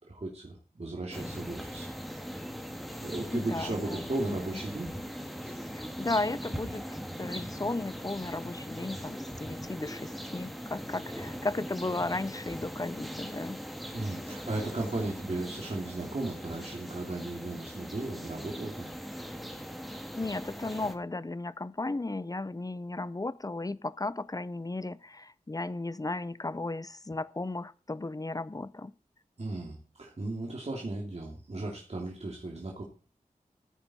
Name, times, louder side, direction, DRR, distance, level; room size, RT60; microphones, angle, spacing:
voice 1, 0.0-1.9 3.0-4.9 5.4-5.6 13.9-18.9 29.4-32.8, right 2 dB, 50° right, -1 dB, 2.6 m, -36 dB
sound 1, 1.1-20.9, equal, ahead, 2.1 m, -40 dB
voice 2, 3.3-4.4 5.7-6.8 7.2-13.6 20.1-28.9, left 2 dB, 25° left, 18 dB, 0.7 m, -35 dB
15.5 x 9.4 x 4.3 m, 0.40 s
wide cardioid pair, 80°, 14 cm